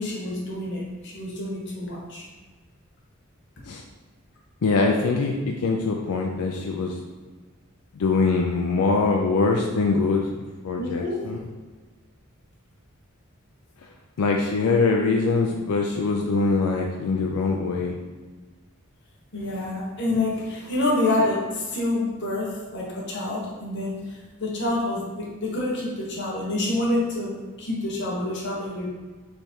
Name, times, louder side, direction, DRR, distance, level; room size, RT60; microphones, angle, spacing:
voice 1, 0.0-2.3 10.8-11.3 19.3-28.9, left 2 dB, 55° left, -3 dB, 1.1 m, -27 dB
voice 2, 4.6-7.0 8.0-10.3 10.6-11.4 14.2-18.0, left 4 dB, 85° left, 1 dB, 0.4 m, -23 dB
3.5 x 3.3 x 4.2 m, 1.3 s
head